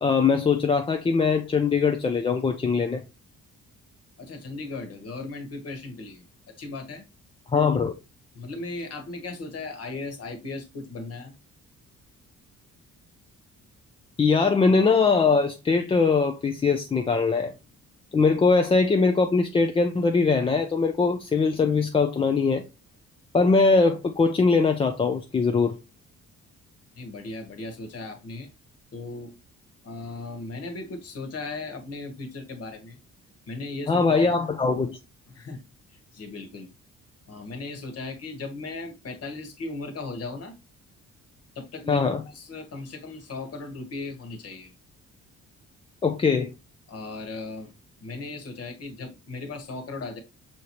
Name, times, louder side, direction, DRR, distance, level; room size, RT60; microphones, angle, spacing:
voice 1, 0.0-3.0 7.5-7.9 14.2-17.5 18.1-22.6 23.3-25.8 33.9-35.0 41.9-42.2 46.0-46.5, left 4 dB, 20° left, 0.3 m, -21 dB
voice 2, 4.2-6.3 6.6-7.0 7.5-7.7 8.3-11.4 26.9-28.5 28.9-29.3 29.8-33.0 33.5-34.5 35.3-36.7 37.3-40.5 41.5-44.7 46.9-47.7 48.0-50.2, left 3 dB, 50° left, 1.3 m, -37 dB
6.3 x 2.8 x 3.0 m
cardioid pair, 135°, 30 cm